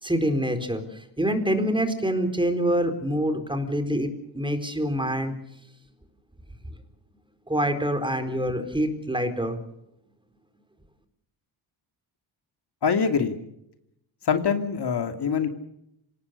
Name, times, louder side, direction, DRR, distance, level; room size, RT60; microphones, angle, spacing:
voice 1, 0.0-5.3 7.5-9.6, equal, 10° right, 7 dB, 4.3 m, -26 dB
voice 2, 12.8-13.4 14.2-15.5, left 6 dB, 55° left, 6 dB, 2.7 m, -24 dB
26.0 x 18.5 x 6.7 m, 0.79 s
cardioid pair, 85°, 48 cm